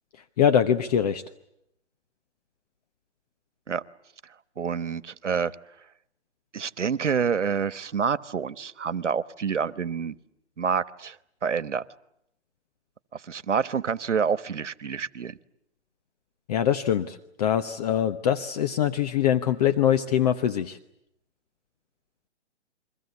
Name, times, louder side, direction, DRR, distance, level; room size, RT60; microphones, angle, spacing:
voice 1, 0.4-1.2 16.5-20.8, left 9 dB, 35° left, 9 dB, 1.0 m, -23 dB
voice 2, 4.6-5.5 6.5-10.1 10.6-11.2 11.4-11.8 13.1-15.4, right 6 dB, 90° right, 17 dB, 1.2 m, -27 dB
29.5 x 23.0 x 8.3 m, 0.79 s
hypercardioid pair, 150°, 35 cm